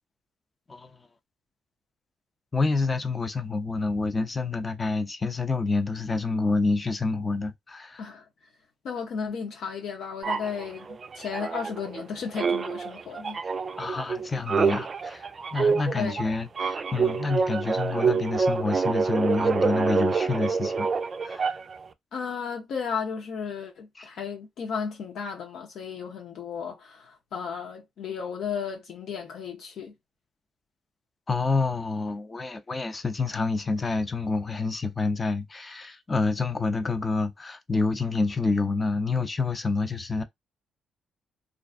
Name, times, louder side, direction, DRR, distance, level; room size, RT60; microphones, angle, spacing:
voice 1, 2.5-8.1 13.8-20.9 21.2-21.6 24.0-24.1 31.3-40.2, left 3 dB, 25° left, 0.5 m, -28 dB
voice 2, 8.8-13.4 16.0-16.2 22.1-29.9, left 6 dB, 70° left, 0.7 m, -34 dB
sound 1, 10.2-12.0 12.3-21.8, right 5 dB, 40° right, 0.3 m, -27 dB
2.4 x 2.4 x 2.4 m
cardioid pair, 90°, 0 cm